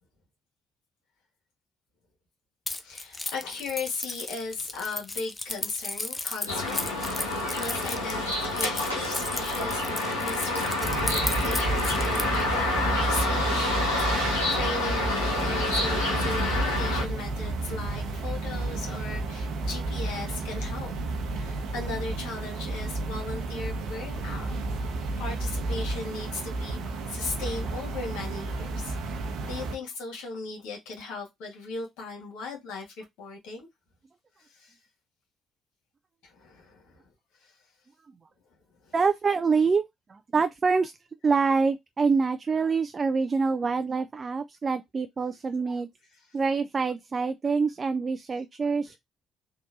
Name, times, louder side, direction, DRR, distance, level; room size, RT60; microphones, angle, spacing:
Keys jangling, 2.7-12.4, left 2 dB, 25° left, 0.6 m, -35 dB
voice 1, 2.8-20.9 21.3-33.7 34.4-34.7 36.2-37.0 37.4-37.5 38.8-38.9, left 3 dB, 70° left, 1.6 m, -38 dB
sound 1, 6.5-17.0, left 2 dB, 90° left, 1.0 m, -28 dB
sound 2, 10.8-29.8, right 2 dB, 65° right, 0.8 m, -31 dB
voice 2, 38.9-39.8 40.1-40.9 41.2-45.9 46.3-49.0, right 4 dB, 40° right, 0.3 m, -25 dB
3.7 x 2.6 x 2.5 m
hypercardioid pair, 45°, 0 cm